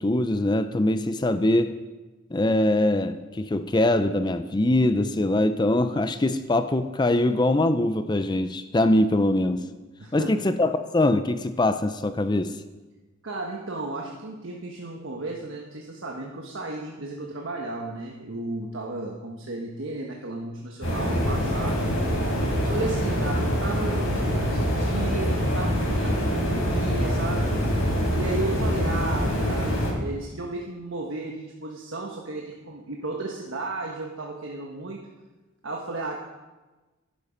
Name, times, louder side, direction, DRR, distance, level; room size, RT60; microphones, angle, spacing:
voice 1, 0.0-1.8 2.3-9.7 10.1-12.6, left 1 dB, 20° left, 11 dB, 0.5 m, -23 dB
voice 2, 10.0-10.4 13.2-21.9 22.6-27.5 28.2-35.0 35.6-36.2, right 2 dB, 70° right, 0 dB, 1.2 m, -34 dB
Location Windy Forest, 20.8-29.9, equal, 80° left, 5.3 m, -25 dB
11.5 x 11.5 x 5.1 m, 1.2 s
head